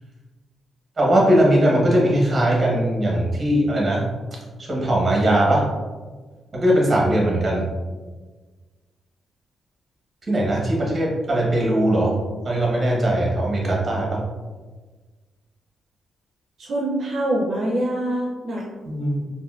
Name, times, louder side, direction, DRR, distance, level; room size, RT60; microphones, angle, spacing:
voice 1, 1.0-4.0 4.6-5.7 6.5-7.7 10.3-12.2 12.4-14.2 18.8-19.2, right 1 dB, 30° right, -3 dB, 1.0 m, -20 dB
voice 2, 16.6-18.6, right 1 dB, 60° right, -4 dB, 0.5 m, -24 dB
3.5 x 2.6 x 2.4 m, 1.3 s
cardioid pair, 110°, 0 cm